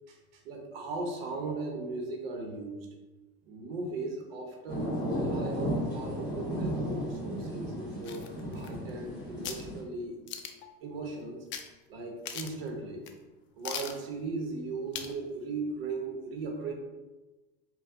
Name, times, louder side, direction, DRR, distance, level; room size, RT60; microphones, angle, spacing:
voice 1, 0.1-2.9 3.4-10.1 10.8-11.5 11.9-13.1 13.6-16.7, right 3 dB, 85° right, 1 dB, 0.7 m, -38 dB
sound 1, 4.7-9.8, equal, 15° left, 1.5 m, -34 dB
sound 2, 8.0-9.1 9.4-9.6 10.3-10.7 11.5-11.7 12.0-12.1 12.2-12.7 13.1-13.2 13.6-14.0 14.9-15.2 15.6-15.7, left 8 dB, 45° left, 0.4 m, -39 dB
4.1 x 2.0 x 2.5 m, 1.1 s
supercardioid pair, 100°, 29 cm